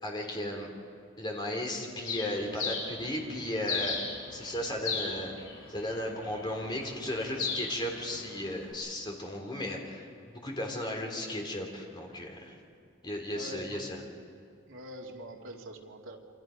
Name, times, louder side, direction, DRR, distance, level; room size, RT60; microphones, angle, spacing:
voice 1, 0.0-0.7 1.2-4.0 4.3-5.3 5.7-12.5 13.0-14.0, left 1 dB, 20° left, 1 dB, 3.4 m, -35 dB
Bird, 2.0-8.7, left 5 dB, 85° left, 6.4 m, -38 dB
voice 2, 13.3-13.9 14.7-16.2, right 1 dB, 70° right, 0 dB, 2.5 m, -44 dB
28.5 x 25.5 x 5.2 m, 2.4 s
head